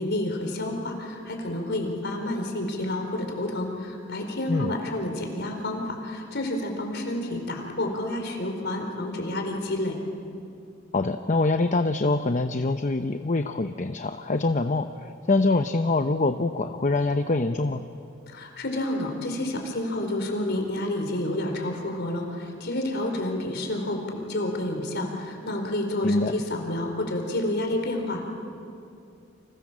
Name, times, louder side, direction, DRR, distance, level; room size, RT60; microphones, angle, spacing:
voice 1, 0.0-10.0 18.3-28.2, left 1 dB, 55° left, 3 dB, 4.5 m, -29 dB
voice 2, 10.9-17.8 26.0-26.3, left 2 dB, 40° left, 7 dB, 0.8 m, -24 dB
29.5 x 25.5 x 7.5 m, 2.5 s
head